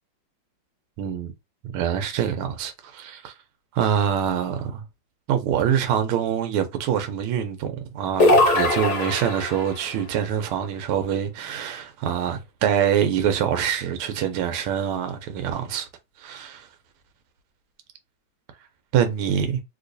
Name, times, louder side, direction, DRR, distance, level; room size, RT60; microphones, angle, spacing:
voice 1, 1.0-1.3 1.6-3.3 3.7-4.8 5.3-15.9 16.2-16.7 18.9-19.6, right 9 dB, 90° right, 1.5 m, -25 dB
sound 1, 8.2-9.7, left 2 dB, 55° left, 1.4 m, -20 dB
3.3 x 3.0 x 2.6 m
omnidirectional pair, 2.3 m